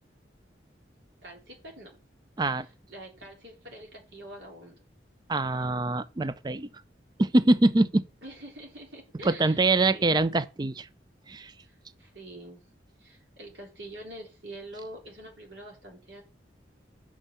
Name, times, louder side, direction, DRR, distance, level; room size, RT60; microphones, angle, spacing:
voice 1, 1.2-1.9 2.9-4.8 8.2-9.6 9.9-10.1 12.0-12.7 13.0-16.2, right 1 dB, 75° right, 3.7 m, -45 dB
voice 2, 5.3-6.7 7.2-8.0 9.2-10.9 11.3-11.5, right 2 dB, 25° right, 0.4 m, -24 dB
6.3 x 5.5 x 6.9 m
head